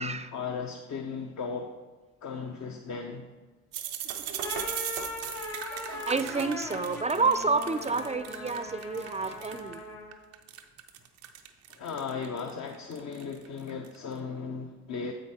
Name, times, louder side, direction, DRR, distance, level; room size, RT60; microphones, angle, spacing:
voice 1, 0.0-1.7 2.2-3.3 11.7-15.1, left 5 dB, 55° left, 3 dB, 0.7 m, -36 dB
sound 1, 3.7-9.7 10.1-14.0, right 10 dB, 90° right, 0.6 m, -38 dB
sound 2, 4.2-10.2, left 3 dB, 80° left, 1.5 m, -40 dB
voice 2, 6.1-9.8, right 4 dB, 20° right, 11 dB, 0.4 m, -29 dB
7.6 x 5.2 x 4.2 m, 1.3 s
hypercardioid pair, 45°, 33 cm